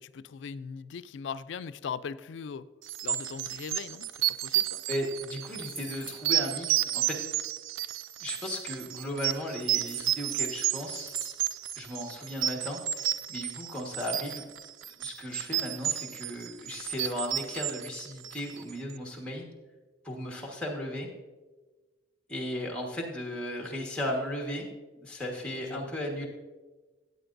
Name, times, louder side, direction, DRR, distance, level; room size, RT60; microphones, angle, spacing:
voice 1, 0.0-2.7 3.0-4.1 4.4-4.8 25.6-26.0, left 6 dB, 70° left, 15 dB, 0.3 m, -39 dB
sound 1, 2.9-18.7, right 12 dB, 80° right, 0.3 m, -32 dB
voice 2, 4.9-7.2 8.2-11.1 11.7-14.4 14.9-19.5 20.0-21.1 22.3-24.7 25.0-26.3, left 1 dB, 5° left, 0 dB, 1.4 m, -36 dB
sound 2, 5.2-5.3 5.5-6.2 9.7-10.6 11.0-11.4, right 1 dB, 25° right, 1.4 m, -44 dB
13.5 x 8.4 x 2.6 m, 1.3 s
head